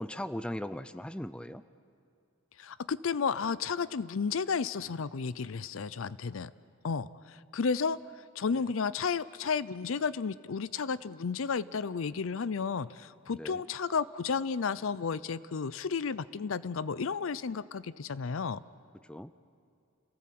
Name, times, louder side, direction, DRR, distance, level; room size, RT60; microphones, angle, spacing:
voice 1, 0.0-1.6 8.5-8.6 13.3-13.6 19.1-19.3, left 1 dB, 5° left, 12 dB, 0.5 m, -38 dB
voice 2, 2.6-6.5 6.8-8.0 8.4-18.6, left 5 dB, 70° left, 17 dB, 0.5 m, -32 dB
29.5 x 18.0 x 7.7 m, 2.4 s
head